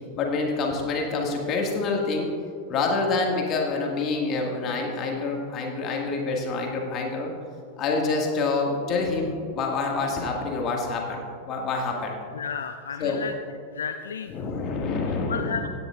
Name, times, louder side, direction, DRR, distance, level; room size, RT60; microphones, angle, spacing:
voice 1, 0.1-2.3 2.7-7.3 7.8-12.2 13.0-13.2 14.3-15.6, left 3 dB, 35° left, 0 dB, 2.0 m, -27 dB
voice 2, 12.3-13.3 13.8-14.3 15.3-15.7, left 6 dB, 65° left, 9 dB, 0.3 m, -32 dB
16.5 x 9.7 x 2.5 m, 2.4 s
figure-of-eight pair, 90°, 0 cm